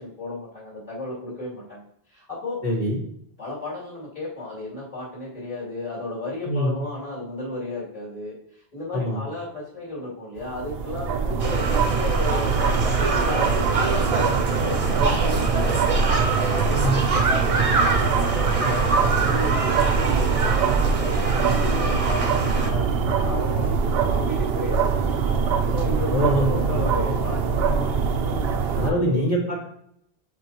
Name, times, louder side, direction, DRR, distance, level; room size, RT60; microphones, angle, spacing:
voice 1, 0.0-2.6 3.4-23.7 24.1-25.4 25.7-28.4 28.8-29.2, left 2 dB, 35° left, -6 dB, 2.5 m, -34 dB
voice 2, 2.6-3.0 6.4-6.8 8.9-9.2 11.3-11.4 16.7-17.0 26.1-26.7 28.7-29.7, equal, 65° left, -10 dB, 2.3 m, -24 dB
sound 1, 10.4-28.9, right 5 dB, 75° right, 0.8 m, -23 dB
sound 2, 11.4-22.7, right 3 dB, 40° right, 0.8 m, -26 dB
7.8 x 4.3 x 2.9 m, 0.70 s
omnidirectional pair, 1.0 m